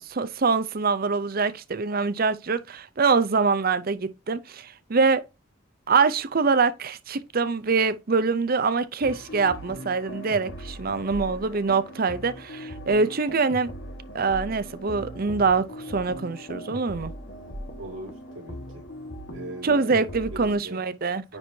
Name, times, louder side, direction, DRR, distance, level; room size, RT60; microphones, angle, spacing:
voice 1, 0.0-5.2 5.9-13.7 14.1-17.1 19.6-21.2, right 4 dB, 45° right, 0.6 m, -24 dB
sound 1, 9.0-20.6, equal, 60° left, 1.5 m, -39 dB
voice 2, 17.8-18.8 19.3-20.0 20.3-20.8 21.3-21.4, right 1 dB, 70° right, 3.5 m, -40 dB
9.7 x 4.6 x 2.7 m
head